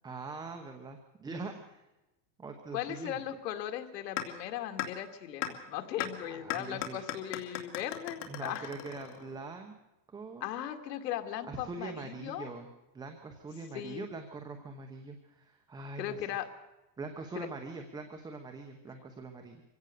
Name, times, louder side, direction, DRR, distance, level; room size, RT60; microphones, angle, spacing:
voice 1, 0.0-1.9 2.4-3.2 6.2-7.0 8.2-9.7 10.1-10.5 11.5-12.7 12.9-16.4 17.0-19.6, right 3 dB, 10° right, 4 dB, 0.9 m, -43 dB
voice 2, 2.7-8.7 10.4-12.5 13.7-14.1 16.0-16.5 17.3-17.5, left 11 dB, 85° left, 6 dB, 2.5 m, -38 dB
sound 1, 4.2-4.3 4.8-4.9 5.4-5.5 6.0-6.1 6.5-9.4, left 13 dB, 65° left, 2.9 m, -36 dB
24.0 x 16.5 x 6.8 m, 0.99 s
supercardioid pair, 170°, 48 cm